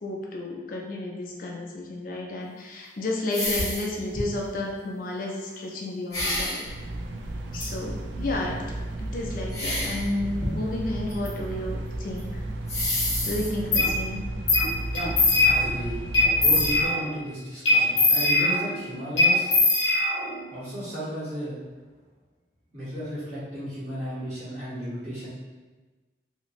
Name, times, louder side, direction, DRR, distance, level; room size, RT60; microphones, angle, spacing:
voice 1, 0.0-6.6 7.5-12.4 13.2-14.2, left 2 dB, 50° left, -1 dB, 0.4 m, -32 dB
sound 1, 3.3-3.9 4.1-4.5 6.1-6.7 7.5-7.7 9.5-10.1 10.4-11.3 11.5-11.6 12.2-12.3 12.7-13.5, left 1 dB, 20° left, 0.8 m, -29 dB
sound 2, 6.7-16.9, right 1 dB, 90° right, 0.3 m, -34 dB
sound 3, 13.7-13.9 14.5-14.7 14.9-15.8 16.1-17.1 17.6-18.8 19.2-20.4, left 2 dB, 85° left, 0.8 m, -21 dB
voice 2, 15.4-16.0 16.4-19.5 20.5-21.6 22.7-25.3, equal, 40° right, -10 dB, 1.2 m, -34 dB
2.8 x 2.5 x 3.0 m, 1.2 s
head